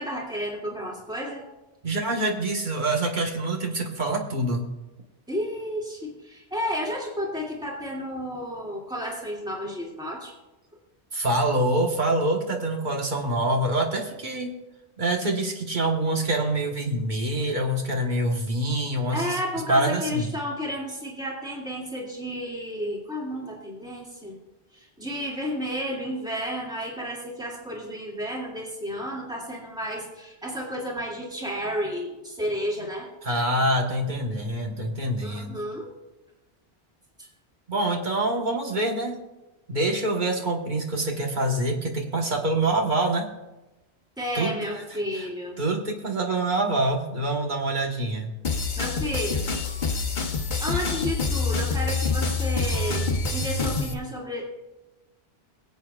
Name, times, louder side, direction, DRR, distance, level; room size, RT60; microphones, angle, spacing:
voice 1, 0.0-1.5 5.3-10.3 19.1-24.4 24.7-33.1 35.2-35.9 37.2-37.3 44.2-45.6 48.8-49.5 50.6-53.0 53.3-54.5, equal, 5° right, -3 dB, 2.3 m, -32 dB
voice 2, 1.8-4.7 11.1-14.6 15.0-19.4 19.7-20.3 33.2-35.6 37.7-39.2 39.7-43.3 44.3-45.3 45.6-48.4, right 1 dB, 50° right, 2 dB, 1.5 m, -26 dB
sound 1, 48.4-53.9, left 4 dB, 50° left, 1.1 m, -26 dB
23.0 x 8.2 x 2.4 m, 1.0 s
omnidirectional pair, 1.1 m